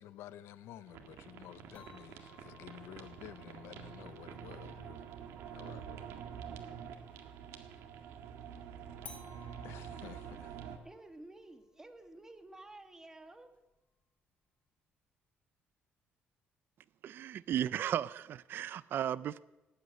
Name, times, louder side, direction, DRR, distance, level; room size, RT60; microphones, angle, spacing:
voice 1, 0.0-5.0 5.5-6.1 9.6-10.4, left 12 dB, 85° left, 0.8 m, -51 dB
sound 1, 0.9-10.8, right 8 dB, 90° right, 1.9 m, -47 dB
sound 2, 1.7-7.3 9.0-14.0, left 4 dB, 30° left, 3.9 m, -60 dB
voice 2, 10.8-13.6, right 2 dB, 10° right, 1.6 m, -52 dB
voice 3, 17.0-19.4, right 10 dB, 55° right, 0.4 m, -35 dB
18.0 x 8.3 x 9.4 m
cardioid pair, 125°, 4 cm